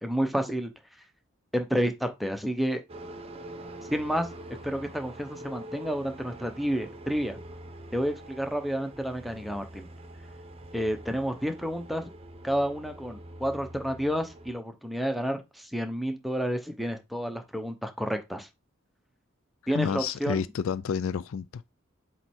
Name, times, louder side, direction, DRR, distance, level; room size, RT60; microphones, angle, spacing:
voice 1, 0.0-0.7 1.5-2.8 3.9-4.3 4.6-7.4 7.9-9.9 10.7-12.1 12.4-18.5 19.7-20.4, equal, ahead, 0.8 m, -30 dB
sound 1, 2.9-14.5, right 1 dB, 30° right, 0.8 m, -45 dB
voice 2, 19.7-21.7, left 6 dB, 70° left, 0.4 m, -30 dB
7.7 x 3.2 x 4.4 m
head